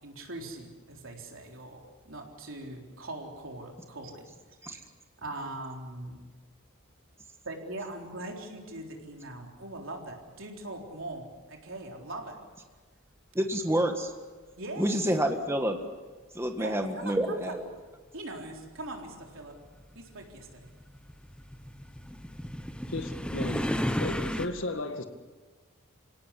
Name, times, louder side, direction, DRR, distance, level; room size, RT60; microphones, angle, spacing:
voice 1, 0.0-4.3 4.6-4.9 5.2-6.2 7.4-12.4 14.6-14.9 16.6-17.2 17.5-17.6 18.1-19.6 19.9-20.7, right 2 dB, 65° right, 4.0 m, -41 dB
voice 2, 13.3-14.1 14.8-15.8 16.3-17.6, right 1 dB, 10° right, 1.6 m, -28 dB
sound 1, 17.2-17.3 18.4-24.5, equal, 5° left, 1.0 m, -34 dB
voice 3, 22.9-23.7 24.0-25.0, left 2 dB, 65° left, 1.9 m, -34 dB
27.0 x 18.0 x 8.3 m
head